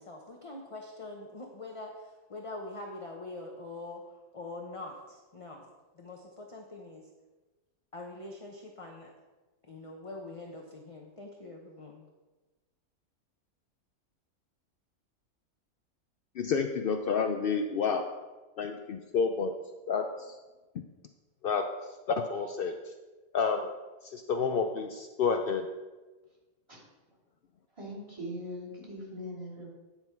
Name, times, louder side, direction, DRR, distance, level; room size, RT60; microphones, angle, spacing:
voice 1, 0.0-5.7 5.9-7.1 7.9-9.1 9.6-12.1, left 2 dB, 35° left, 1 dB, 0.6 m, -44 dB
voice 2, 16.4-18.0 18.6-19.5 19.9-20.4 21.4-21.6 22.1-22.7 23.3-23.7 24.0-25.7, left 5 dB, 80° left, 6 dB, 0.5 m, -29 dB
voice 3, 27.8-29.7, equal, 20° right, -6 dB, 2.8 m, -41 dB
9.8 x 5.7 x 4.5 m, 1.2 s
omnidirectional pair, 1.5 m